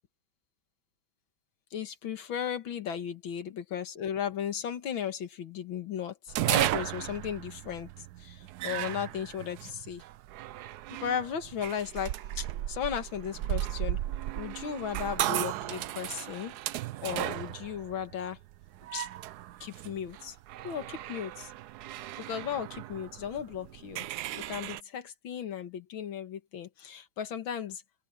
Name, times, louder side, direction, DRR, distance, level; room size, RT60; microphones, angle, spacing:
voice 1, 1.7-10.0 11.0-14.0 14.3-16.6 17.0-18.4 18.9-19.1 19.6-20.4 20.6-21.5 22.2-27.8, left 8 dB, 85° left, 2.3 m, -36 dB
sound 1, 6.3-24.8, right 14 dB, 70° right, 0.9 m, -35 dB
open air
omnidirectional pair, 2.1 m